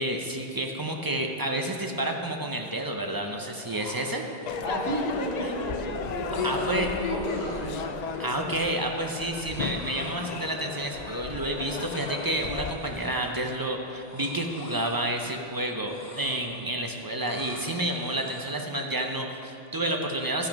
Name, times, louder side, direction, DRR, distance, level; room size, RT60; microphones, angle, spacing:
voice 1, 0.0-4.2 6.4-6.9 8.2-20.5, right 1 dB, 25° right, 2 dB, 0.5 m, -30 dB
sound 1, 3.3-3.4 3.5-4.7 6.3-8.5 9.6-11.4 11.6-12.4 12.7-13.5 13.9-15.6 15.8-16.8 17.2-18.7, left 2 dB, 70° left, 1.5 m, -46 dB
Crowd / Fireworks, 4.5-12.7, left 6 dB, 55° left, 0.5 m, -34 dB
voice 2, 4.6-7.7, right 1 dB, 60° right, -6 dB, 2.2 m, -32 dB
12.5 x 5.9 x 5.2 m, 2.9 s
omnidirectional pair, 1.1 m